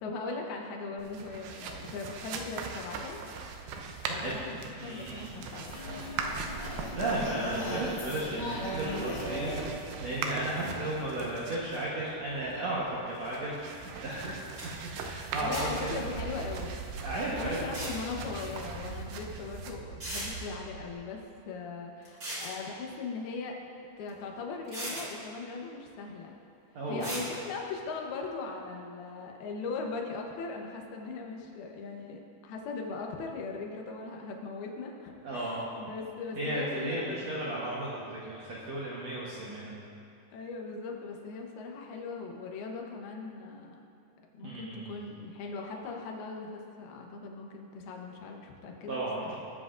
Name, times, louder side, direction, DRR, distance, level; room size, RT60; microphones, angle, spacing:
voice 1, 0.0-3.2 4.1-5.9 10.6-11.0 15.4-16.8 17.4-23.5 24.0-26.4 26.9-37.4 40.3-43.8 44.3-49.4, left 4 dB, 75° left, 1 dB, 2.8 m, -39 dB
sound 1, 1.0-20.9, right 4 dB, 85° right, 1.8 m, -40 dB
voice 2, 4.1-5.5 6.9-9.5 10.0-14.5 15.0-16.0 17.0-17.8 26.7-27.0 35.2-35.6 36.4-39.7 44.4-44.9 48.9-49.3, right 1 dB, 70° right, -7 dB, 1.6 m, -34 dB
sound 2, 5.7-10.8, left 1 dB, 50° left, 2.5 m, -37 dB
sound 3, 14.3-14.4 14.6-14.7 15.5-15.9 17.6-18.0 19.3-19.4 20.0-20.3 22.0-22.5 24.1-24.2 24.7-25.1 27.0-27.3, right 1 dB, 30° right, 2.1 m, -37 dB
19.5 x 7.6 x 2.5 m, 2.6 s
omnidirectional pair, 4.7 m